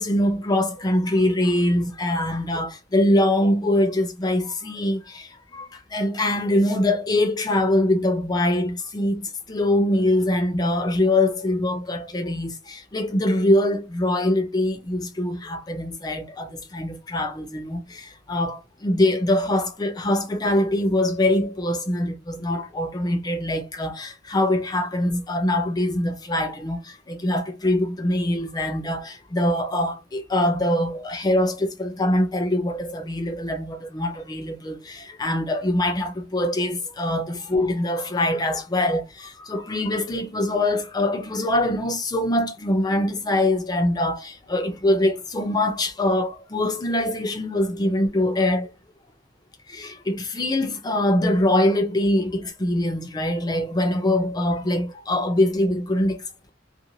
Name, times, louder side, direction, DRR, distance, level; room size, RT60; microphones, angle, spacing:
voice 1, 0.0-48.7 49.7-56.5, left 1 dB, 20° left, 0.5 m, -23 dB
2.9 x 2.5 x 2.6 m
head